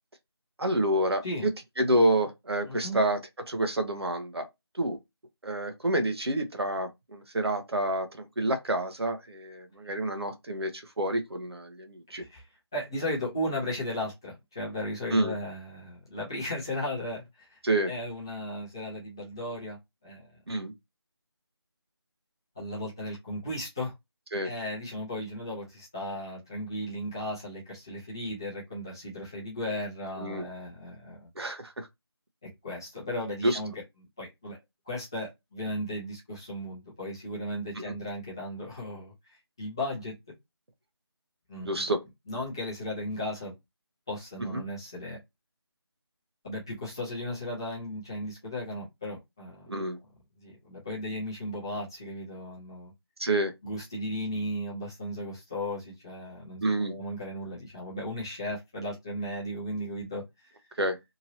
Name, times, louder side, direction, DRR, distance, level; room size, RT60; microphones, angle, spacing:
voice 1, 0.6-1.5 1.8-3.2 3.5-4.5 4.7-5.0 5.4-12.3 15.1-15.3 17.6-17.9 20.5-20.7 24.3-24.5 30.2-30.4 31.4-31.9 33.4-33.6 37.8-37.9 41.6-42.0 44.4-44.6 49.7-50.0 53.2-53.5 56.6-56.9 60.8-61.0, right 1 dB, 70° right, 0.8 m, -28 dB
voice 2, 2.7-3.0 12.1-17.6 17.9-19.8 20.0-20.3 22.6-23.9 24.4-31.3 32.4-33.7 34.2-34.6 34.9-40.1 41.5-41.9 42.3-43.5 44.1-45.2 46.4-49.7 50.4-52.9 53.6-60.5, left 1 dB, 10° left, 0.6 m, -36 dB
2.9 x 2.7 x 2.7 m
figure-of-eight pair, 170°, 14 cm